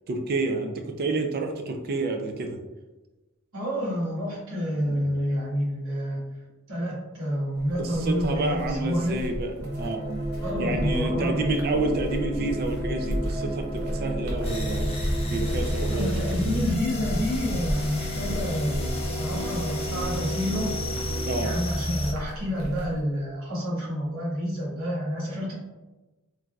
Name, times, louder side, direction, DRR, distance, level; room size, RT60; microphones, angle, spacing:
voice 1, 0.1-2.6 4.9-5.1 7.8-10.1 10.6-14.9 15.3-16.4 21.3-21.5, right 2 dB, 45° right, 4 dB, 0.4 m, -29 dB
voice 2, 3.5-6.2 6.7-9.2 10.4-11.5 15.9-20.7 21.4-25.5, equal, 70° right, -7 dB, 1.3 m, -29 dB
sound 1, 7.5-23.0, equal, 85° right, 0.7 m, -35 dB
sound 2, 9.6-21.4, right 1 dB, 25° right, 1.5 m, -34 dB
sound 3, 14.4-22.1, left 1 dB, 30° left, 0.5 m, -31 dB
3.2 x 2.5 x 2.3 m, 1.1 s
head